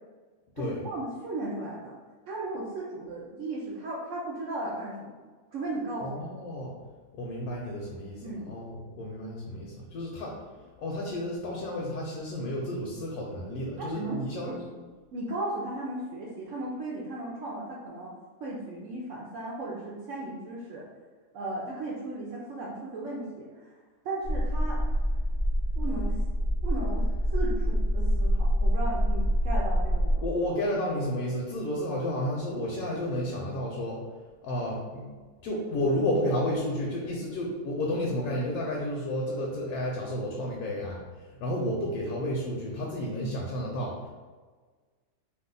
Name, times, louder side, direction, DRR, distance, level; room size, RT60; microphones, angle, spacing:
voice 1, 0.6-1.9 2.3-5.2 5.5-6.1 8.2-8.5 13.8-14.8 15.1-18.1 18.4-20.9 21.3-23.7 24.0-24.8 25.8-26.2 26.6-27.1 27.3-30.2, right 2 dB, 70° right, -3 dB, 0.7 m, -36 dB
voice 2, 6.0-6.7 7.1-10.4 10.8-14.7 30.2-34.0 34.4-35.1 35.4-44.1, left 1 dB, 70° left, -2 dB, 1.0 m, -31 dB
sound 1, 24.2-30.1, equal, 35° right, 0.9 m, -26 dB
2.7 x 2.3 x 3.7 m, 1.4 s
omnidirectional pair, 1.7 m